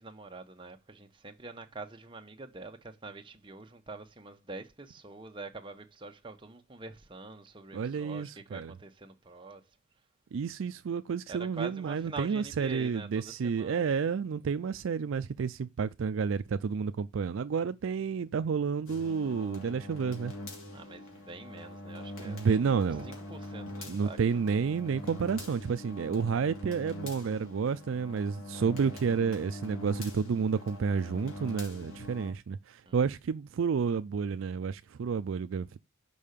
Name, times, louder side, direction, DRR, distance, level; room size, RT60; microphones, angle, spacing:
voice 1, 0.0-9.6 11.3-13.9 20.7-24.2 24.5-24.6 32.9-33.0, right 3 dB, 25° right, 1.0 m, -45 dB
voice 2, 7.7-8.7 10.3-20.3 22.2-23.1 23.9-35.8, right 6 dB, 65° right, 0.4 m, -30 dB
sound 1, 18.9-32.3, left 1 dB, 85° left, 2.8 m, -43 dB
5.6 x 5.4 x 6.6 m
head